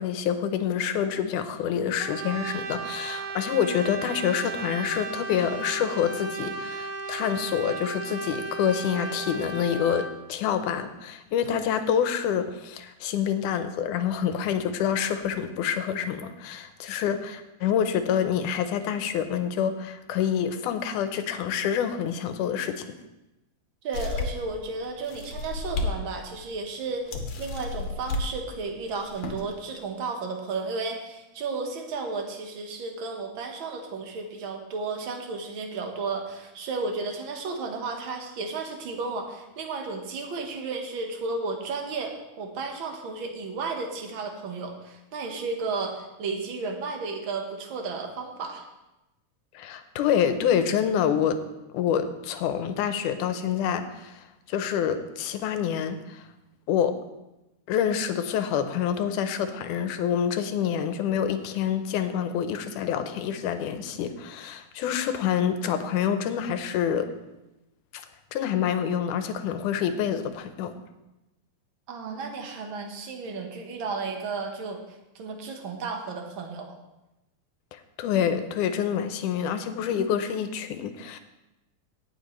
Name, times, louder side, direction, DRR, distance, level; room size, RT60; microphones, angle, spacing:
voice 1, 0.0-22.9 49.5-51.4 51.7-56.3 56.7-56.9 57.7-67.1 68.3-70.7 77.7-81.2, left 8 dB, 90° left, 9 dB, 2.3 m, -27 dB
Brass instrument, 2.0-10.2, right 4 dB, 75° right, 1.3 m, -35 dB
voice 2, 23.8-48.6 71.9-74.8 75.1-76.7, right 4 dB, 55° right, 3 dB, 1.6 m, -33 dB
sound 1, 23.9-24.5 25.0-25.9 26.3-26.4 27.1-28.3 29.0-29.4, left 3 dB, 70° left, 2.3 m, -31 dB
18.5 x 7.3 x 3.1 m, 0.98 s
omnidirectional pair, 3.5 m